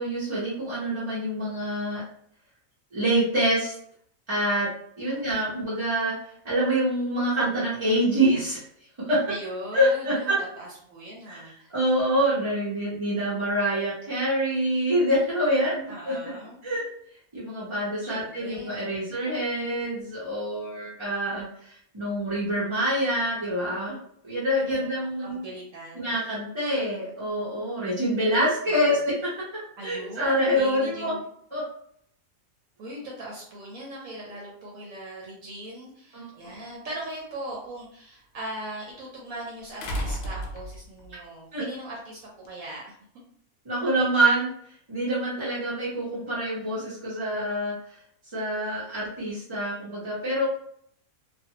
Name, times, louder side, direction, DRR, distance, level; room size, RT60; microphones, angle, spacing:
voice 1, 0.0-2.0 2.9-3.7 4.3-4.7 5.0-6.1 6.4-8.6 9.1-9.2 9.7-10.3 11.3-11.4 11.7-16.1 16.6-16.9 17.3-24.0 24.2-25.4 25.9-29.1 29.8-31.1 31.5-31.6 36.1-36.3 41.5-41.6 43.6-44.5 44.9-47.7 48.3-50.4, right 1 dB, 30° right, -9 dB, 0.6 m, -26 dB
voice 2, 5.0-5.4 9.2-11.7 15.9-16.7 18.0-19.0 24.6-26.2 28.7-28.8 29.8-31.2 32.8-43.0, right 1 dB, 65° right, -3 dB, 1.1 m, -39 dB
sound 1, 36.5-36.6 39.8-41.1 42.4-42.5, equal, 85° left, 0.5 m, -32 dB
2.5 x 2.4 x 2.8 m, 0.66 s
omnidirectional pair, 1.6 m